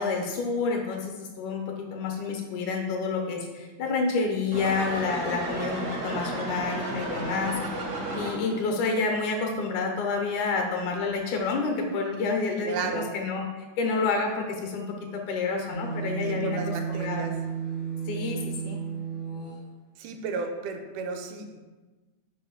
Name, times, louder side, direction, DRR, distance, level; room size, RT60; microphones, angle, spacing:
voice 1, 0.0-14.9 15.1-17.3 18.1-18.8, left 4 dB, 85° left, 2 dB, 2.3 m, -29 dB
sound 1, 4.5-8.7, right 1 dB, 70° right, 0.9 m, -33 dB
voice 2, 12.6-13.1 16.2-17.3 20.0-21.6, right 4 dB, 85° right, 5 dB, 2.1 m, -33 dB
sound 2, 15.7-19.6, right 7 dB, 65° left, 0.9 m, -33 dB
5.2 x 4.9 x 3.9 m, 1.2 s
omnidirectional pair, 3.5 m